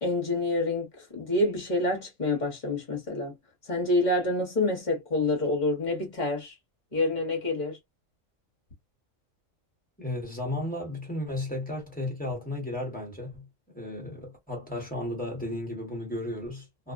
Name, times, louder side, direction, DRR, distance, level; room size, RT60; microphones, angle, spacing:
voice 1, 0.0-3.3 3.7-6.5 6.9-7.8, left 2 dB, 40° left, 1.0 m, -27 dB
voice 2, 10.0-13.5 13.7-16.9, left 1 dB, 5° left, 1.0 m, -34 dB
2.5 x 2.1 x 2.4 m
omnidirectional pair, 1.4 m